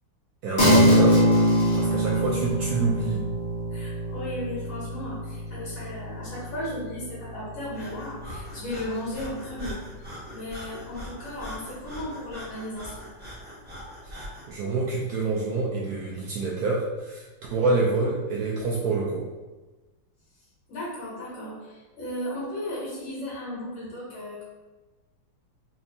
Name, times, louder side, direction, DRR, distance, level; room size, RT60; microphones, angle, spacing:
voice 1, 0.4-1.2 1.7-3.2 14.5-19.3, right 3 dB, 75° right, -4 dB, 0.9 m, -27 dB
sound 1, 0.6-10.3, equal, 35° left, 0.9 m, -25 dB
voice 2, 3.7-9.8 10.3-13.1 20.7-24.4, left 1 dB, 85° left, -8 dB, 2.5 m, -35 dB
Breathing, 7.7-14.5, equal, 10° right, 0.4 m, -41 dB
4.3 x 2.9 x 2.6 m, 1.2 s
omnidirectional pair, 2.1 m